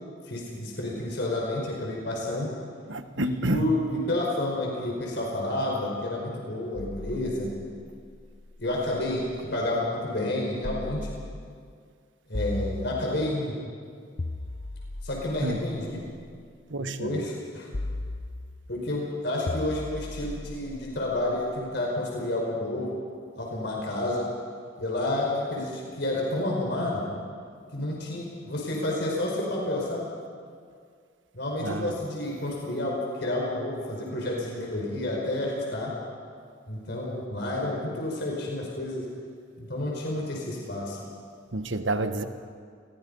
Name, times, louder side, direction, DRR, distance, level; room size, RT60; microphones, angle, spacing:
voice 1, 0.3-2.5 3.1-7.5 8.6-11.1 12.3-13.5 15.0-16.0 16.8-17.7 18.7-22.9 23.3-24.3 24.8-27.0 27.7-30.1 31.3-35.9 36.7-39.0 39.6-41.0, left 1 dB, 60° left, -2 dB, 5.0 m, -30 dB
voice 2, 2.9-3.7 15.4-15.7 16.7-17.3 31.6-31.9 41.5-42.2, right 2 dB, 80° right, 9 dB, 1.4 m, -29 dB
sound 1, 6.7-9.5 10.6-11.7 12.3-13.5 14.2-16.4 17.7-18.8 19.5-21.6, left 2 dB, 40° left, 0.8 m, -37 dB
28.5 x 22.0 x 5.5 m, 2.1 s
head